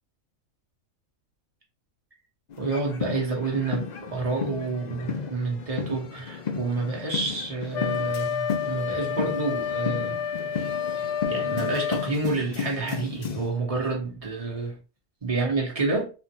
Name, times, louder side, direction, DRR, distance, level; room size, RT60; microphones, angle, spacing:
sound 1, 2.5-13.5, left 6 dB, 85° left, 0.3 m, -34 dB
voice 1, 2.6-10.2 10.9-14.8 15.2-16.1, right 3 dB, 25° right, 1.2 m, -29 dB
Wind instrument woodwind instrument, 7.7-12.2, left 7 dB, 65° left, 0.8 m, -29 dB
4.1 x 2.5 x 2.9 m
omnidirectional pair, 1.4 m